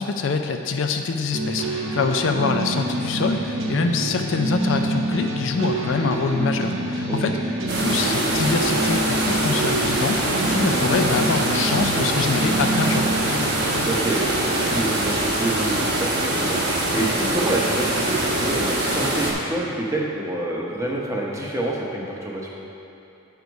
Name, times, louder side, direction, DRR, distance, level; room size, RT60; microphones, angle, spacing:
voice 1, 0.0-7.4 7.8-10.2 10.5-13.1, left 4 dB, 55° left, 5 dB, 0.4 m, -25 dB
sound 1, 1.3-15.2, right 1 dB, 70° right, 0.9 m, -27 dB
sound 2, 7.7-19.3, right 1 dB, 50° right, 1.0 m, -23 dB
voice 2, 13.8-22.5, right 1 dB, 15° right, -3 dB, 0.8 m, -27 dB
8.1 x 4.7 x 5.2 m, 2.8 s
head